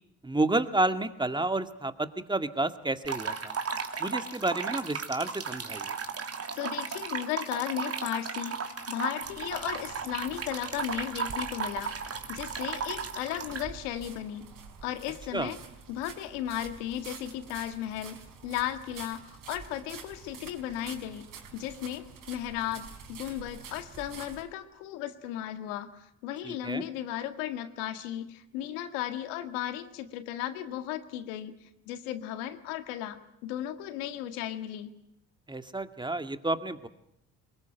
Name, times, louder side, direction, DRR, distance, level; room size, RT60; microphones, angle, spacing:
voice 1, 0.2-3.6 4.0-6.0 15.3-15.5 26.4-26.8 35.5-36.9, right 2 dB, 10° right, 9 dB, 2.0 m, -30 dB
sound 1, 3.0-13.6, right 5 dB, 40° right, 3.1 m, -35 dB
voice 2, 6.6-14.5 14.8-15.6 15.9-21.3 21.5-34.9, left 12 dB, 85° left, 9 dB, 1.9 m, -35 dB
sound 2, 9.2-24.4, right 6 dB, 60° right, 4.9 m, -48 dB
23.5 x 21.0 x 9.1 m, 0.78 s
supercardioid pair, 65°, 36 cm